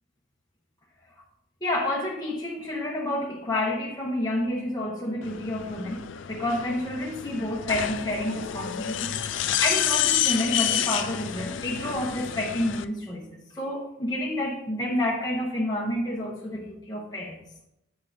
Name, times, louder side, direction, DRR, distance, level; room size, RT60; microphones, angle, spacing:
voice 1, 1.6-6.0 6.3-17.4, left 1 dB, 20° left, -3 dB, 0.9 m, -29 dB
sound 1, 5.2-12.8, left 11 dB, 75° left, 0.4 m, -29 dB
8.1 x 6.9 x 2.7 m, 0.86 s
head